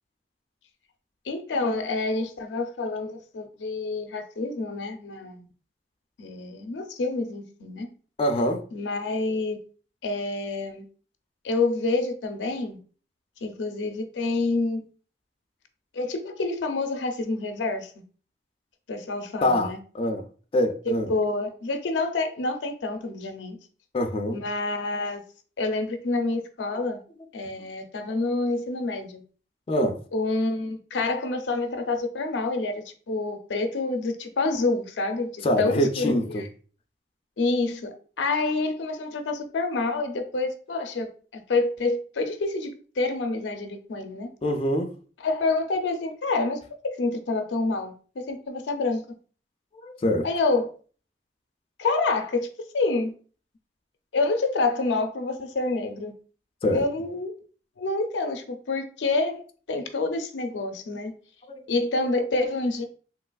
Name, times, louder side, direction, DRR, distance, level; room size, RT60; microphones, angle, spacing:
voice 1, 1.3-5.5 6.2-7.9 8.7-9.6 10.0-10.8 11.4-12.8 13.4-14.8 15.9-17.9 18.9-19.8 20.9-23.6 24.3-25.2 25.6-27.0 27.3-29.2 30.1-36.4 37.4-44.3 45.2-49.0 50.2-50.7 51.8-52.5 52.7-53.1 54.1-56.1 56.7-57.3 57.8-59.4 59.7-61.1 61.7-62.8, left 3 dB, 90° left, 0.5 m, -27 dB
voice 2, 8.2-8.6 19.4-20.3 20.5-21.1 23.9-24.4 29.7-30.0 35.4-36.5 44.4-44.9 49.7-50.3 56.6-56.8 61.5-61.6, left 1 dB, 30° left, 0.3 m, -24 dB
3.1 x 2.8 x 2.2 m
head